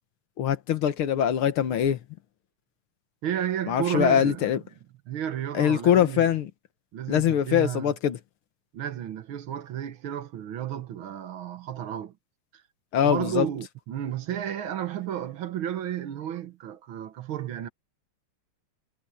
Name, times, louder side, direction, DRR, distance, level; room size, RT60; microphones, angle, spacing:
voice 1, 0.4-2.0 3.7-4.6 5.5-6.5 7.1-8.2 12.9-13.5, left 9 dB, 80° left, 2.1 m, -23 dB
voice 2, 3.2-4.6 5.1-6.4 6.9-7.9 8.7-12.2 12.5-12.6 13.0-17.7, right 10 dB, 75° right, 1.9 m, -32 dB
omnidirectional pair, 2.3 m